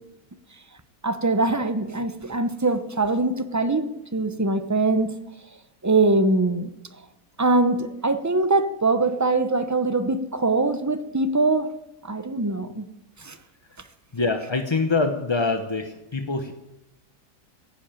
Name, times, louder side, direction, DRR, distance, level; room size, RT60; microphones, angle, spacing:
voice 1, 1.0-5.1 5.8-6.7 7.4-11.7 12.0-12.9 13.2-13.3, right 2 dB, 20° right, 10 dB, 0.5 m, -22 dB
voice 2, 14.1-16.5, left 3 dB, 25° left, 5 dB, 0.7 m, -24 dB
16.0 x 10.5 x 8.9 m, 0.94 s
omnidirectional pair, 1.7 m